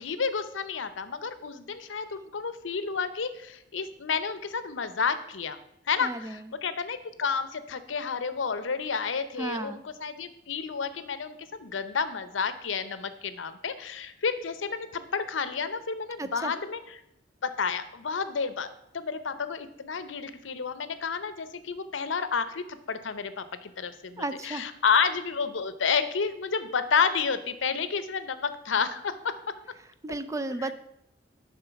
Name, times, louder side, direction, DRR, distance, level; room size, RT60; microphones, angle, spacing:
voice 1, 0.0-5.6 5.9-16.8 17.4-18.7 18.9-29.4 30.6-30.7, left 5 dB, 85° left, 12 dB, 0.7 m, -30 dB
voice 2, 6.0-6.5 9.4-9.8 16.2-16.5 24.2-24.8 30.0-30.7, right 2 dB, 15° right, 11 dB, 0.4 m, -33 dB
11.0 x 3.8 x 5.7 m, 0.80 s
head